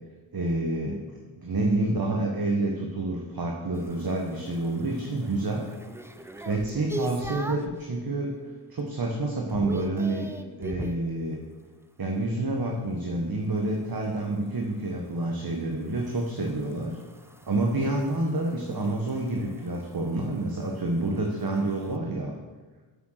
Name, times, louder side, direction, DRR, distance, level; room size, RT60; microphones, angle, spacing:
voice 1, 0.3-1.1 1.4-5.6 6.5-8.3 8.7-10.3 10.6-11.4 12.0-17.0 17.5-22.3, right 2 dB, 50° right, 1 dB, 1.3 m, -28 dB
sound 1, 3.7-7.8 8.3-8.7 9.0-11.1 13.6-22.0, right 1 dB, 5° right, 0.6 m, -42 dB
7.7 x 7.1 x 6.4 m, 1.3 s
wide cardioid pair, 65°, 46 cm